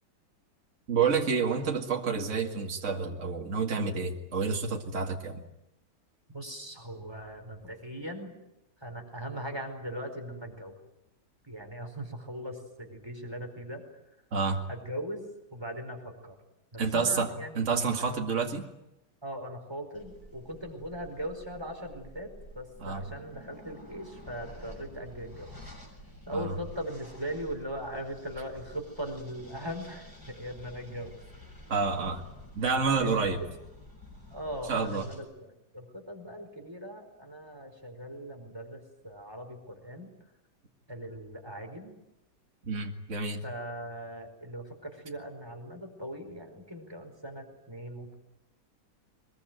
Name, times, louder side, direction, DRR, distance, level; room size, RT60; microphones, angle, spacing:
voice 1, 0.9-5.4 14.3-14.7 16.8-17.3 17.6-18.6 22.8-23.0 26.3-26.5 31.7-32.2 32.6-33.4 34.7-35.1 42.7-43.4, right 5 dB, 45° right, 2 dB, 2.4 m, -29 dB
voice 2, 6.3-8.4 8.8-10.8 11.4-13.8 14.7-15.2 15.5-16.3 16.7-17.5 18.0-18.2 19.2-25.5 26.3-31.1 32.9-33.5 34.3-40.1 40.9-41.9 43.4-48.1, equal, 15° right, 3 dB, 4.7 m, -39 dB
sound 1, 19.9-35.2, equal, 10° left, 7.2 m, -50 dB
23.5 x 21.5 x 9.3 m, 0.89 s
omnidirectional pair, 1.9 m